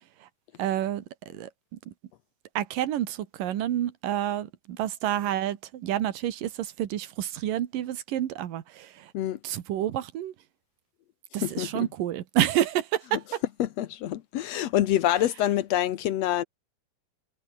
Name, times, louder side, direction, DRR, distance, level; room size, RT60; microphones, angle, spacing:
voice 1, 0.6-1.0 1.3-1.5 1.9-2.0 2.5-9.1 9.4-10.3 11.3-13.4, right 12 dB, 75° right, 3.2 m, -29 dB
voice 2, 11.4-11.9 13.6-16.4, left 12 dB, 70° left, 1.7 m, -26 dB
omnidirectional pair, 3.9 m